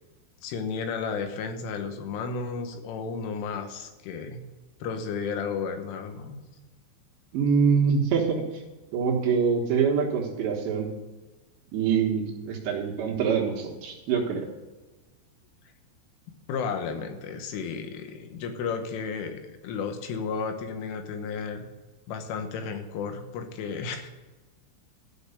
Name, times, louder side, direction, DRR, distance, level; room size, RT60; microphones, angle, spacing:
voice 1, 0.4-4.4 4.8-6.4 16.5-21.7 22.1-24.1, left 5 dB, 85° left, 7 dB, 3.7 m, -33 dB
voice 2, 7.3-8.4 8.9-10.9 11.7-14.5, right 6 dB, 70° right, -1 dB, 3.4 m, -25 dB
13.0 x 6.0 x 6.7 m, 1.2 s
omnidirectional pair, 5.5 m